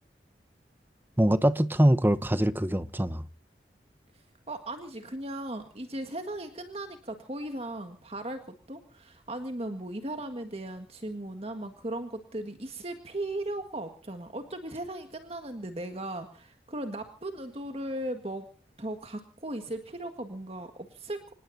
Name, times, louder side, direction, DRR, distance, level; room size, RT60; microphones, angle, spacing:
voice 1, 1.2-3.2, right 1 dB, 10° right, 0.8 m, -23 dB
voice 2, 4.1-18.5 18.8-21.3, right 1 dB, 35° right, 1.7 m, -37 dB
26.5 x 19.5 x 2.7 m
head